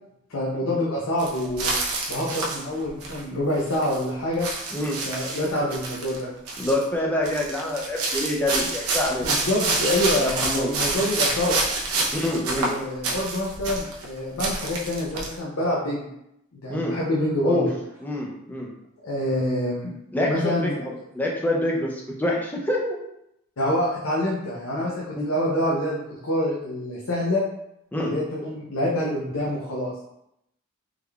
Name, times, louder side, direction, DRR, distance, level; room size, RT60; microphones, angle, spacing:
voice 1, 0.3-1.7 2.1-4.5 5.0-6.3 9.2-11.5 12.4-16.1 16.5-17.6 19.0-19.9 20.3-20.8 23.6-27.4 28.0-29.9, left 1 dB, 70° left, -4 dB, 0.6 m, -26 dB
sound 1, 1.2-3.2 3.6-4.0 4.4-6.2 6.5-6.9 7.2-14.1 14.4-15.3, right 3 dB, 85° right, 0.7 m, -28 dB
voice 2, 6.6-9.4 10.2-10.7 12.1-12.7 16.7-16.9 17.4-17.6 18.0-18.7 20.1-23.0 25.2-25.3 27.9-28.1, left 1 dB, 10° left, -2 dB, 0.4 m, -26 dB
3.6 x 3.2 x 2.3 m, 0.81 s
head